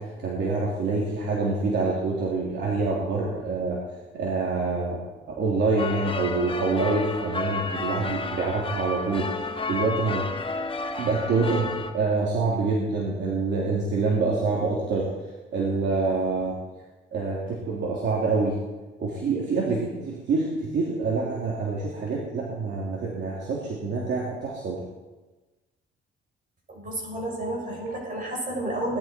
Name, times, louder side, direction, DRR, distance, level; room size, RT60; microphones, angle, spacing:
voice 1, 0.0-3.8 4.1-5.0 5.3-9.3 9.7-10.3 11.0-15.1 15.5-16.6 17.1-18.5 19.0-24.8, right 3 dB, 65° right, -4 dB, 3.3 m, -26 dB
sound 1, 5.8-11.9, left 3 dB, 25° left, 1.4 m, -31 dB
voice 2, 26.7-29.0, right 1 dB, 45° right, -1 dB, 6.5 m, -31 dB
19.0 x 12.0 x 4.6 m, 1.2 s
cardioid pair, 90°, 20 cm